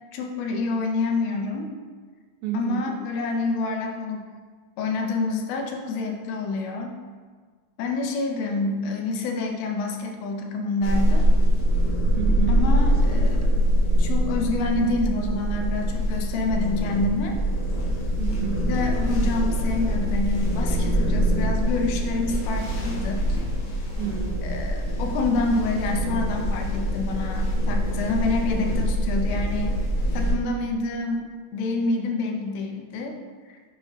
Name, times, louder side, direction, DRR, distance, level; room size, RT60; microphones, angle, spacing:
voice 1, 0.1-1.7 2.5-4.2 4.8-6.9 7.8-11.3 12.5-13.5 14.0-17.3 18.7-23.3 24.4-29.7 30.1-33.2, left 3 dB, 80° left, 2 dB, 2.6 m, -27 dB
voice 2, 2.4-2.9 12.2-12.6 18.2-18.7 24.0-24.7, right 5 dB, 85° right, 1 dB, 2.8 m, -30 dB
sound 1, 10.8-30.3, equal, 55° left, 2.4 m, -24 dB
8.2 x 5.3 x 3.0 m, 1.5 s
omnidirectional pair, 4.2 m